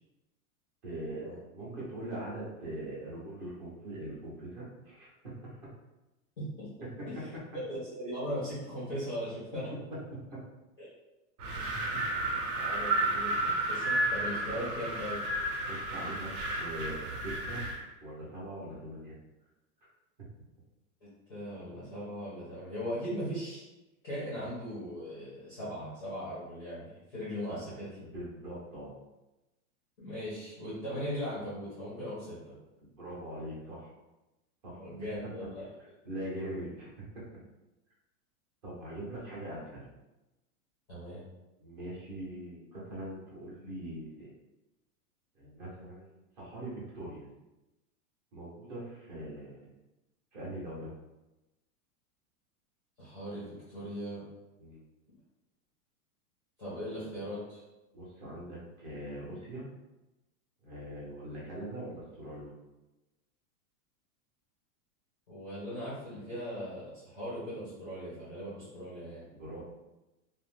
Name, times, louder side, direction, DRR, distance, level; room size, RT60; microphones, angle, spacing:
voice 1, 0.8-5.6 7.0-7.1 10.3-10.4 15.7-17.6 18.0-19.1 24.4-24.5 27.5-27.6 28.0-28.9 32.8-33.9 34.6-34.9 36.0-36.9 38.6-39.8 41.6-44.3 45.3-47.2 48.3-49.7 50.3-50.9 54.6-54.8 57.9-59.7 60.6-62.5 69.3-69.6, right 1 dB, 30° right, -6 dB, 0.7 m, -42 dB
voice 2, 6.4-6.7 7.2-7.3 7.6-9.7 10.8-10.9 11.6-11.8 12.5-15.2 21.0-23.6 24.0-27.9 30.0-32.5 34.7-35.7 40.9-41.2 53.0-54.2 56.6-57.6 65.3-69.2, equal, 15° left, -11 dB, 0.4 m, -39 dB
Wind, 11.4-17.8, right 2 dB, 75° right, 1.0 m, -32 dB
2.5 x 2.0 x 3.2 m, 1.0 s
supercardioid pair, 180°, 45 cm